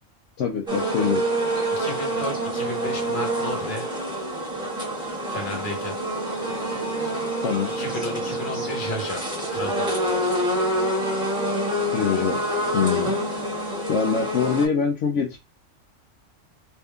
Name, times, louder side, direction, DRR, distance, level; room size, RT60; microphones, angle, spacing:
voice 1, 0.4-1.2 7.4-7.7 11.9-12.4 12.7-13.2 13.9-15.4, left 6 dB, 70° left, 0.9 m, -24 dB
sound 1, 0.7-14.7, right 1 dB, 5° right, 1.5 m, -27 dB
voice 2, 1.7-3.9 5.3-6.0 7.7-9.2 9.5-10.0, left 1 dB, 40° left, 1.3 m, -33 dB
3.5 x 2.7 x 3.5 m
omnidirectional pair, 1.4 m